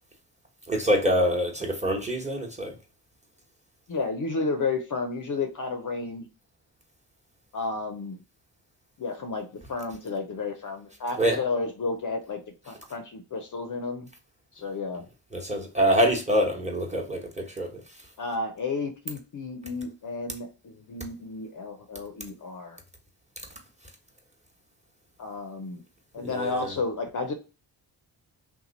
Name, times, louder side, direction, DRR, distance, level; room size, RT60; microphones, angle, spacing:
voice 1, 0.7-2.7 11.2-11.4 15.3-17.7 26.2-26.7, equal, 15° right, 1.1 m, -25 dB
voice 2, 3.9-6.3 7.5-8.2 9.0-12.4 12.6-14.1 14.5-15.1 18.2-22.8 25.2-25.8 26.1-27.3, left 3 dB, 40° left, 0.6 m, -32 dB
2.9 x 2.2 x 4.0 m
supercardioid pair, 45°, 48 cm